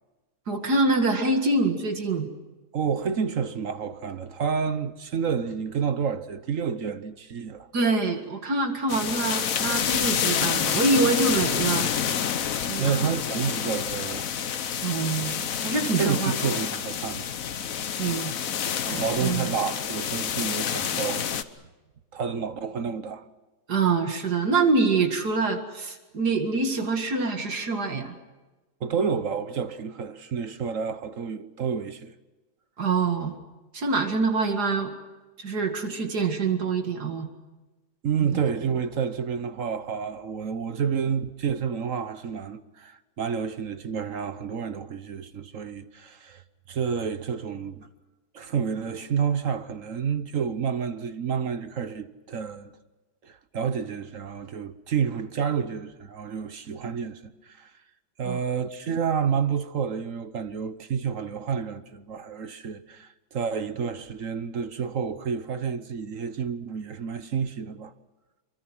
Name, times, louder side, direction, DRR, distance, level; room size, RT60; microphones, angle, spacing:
voice 1, 0.5-2.3 7.7-11.9 12.7-13.1 14.8-15.3 15.6-16.3 18.0-18.3 18.9-19.5 23.7-28.2 32.8-33.4 33.7-34.9 35.4-37.3 38.2-38.4 58.2-58.4, right 3 dB, 70° right, 2.6 m, -25 dB
voice 2, 2.7-7.7 12.8-14.3 16.0-17.3 19.0-21.3 22.1-23.2 28.8-32.1 38.0-46.4 46.7-47.8 48.3-52.7 53.2-57.7 58.2-67.9, right 6 dB, 55° right, 1.3 m, -29 dB
sound 1, 8.9-21.4, left 8 dB, 60° left, 1.3 m, -28 dB
26.0 x 23.5 x 6.2 m
omnidirectional pair, 1.8 m